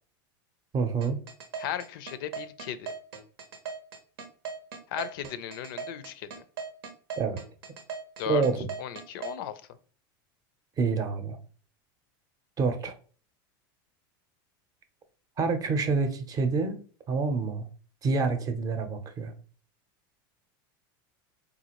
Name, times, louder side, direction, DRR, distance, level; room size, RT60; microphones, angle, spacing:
voice 1, 0.7-1.2 7.2-7.4 8.3-8.7 10.8-11.4 12.6-12.9 15.4-16.8 17.1-17.7 18.0-19.3, right 4 dB, 30° right, 0.6 m, -27 dB
sound 1, 1.0-9.4, right 5 dB, 90° right, 0.8 m, -38 dB
voice 2, 1.6-2.9 4.9-6.3 8.2-8.5 8.8-9.6, left 10 dB, 75° left, 0.4 m, -36 dB
3.8 x 2.5 x 2.9 m
supercardioid pair, 115°, 12 cm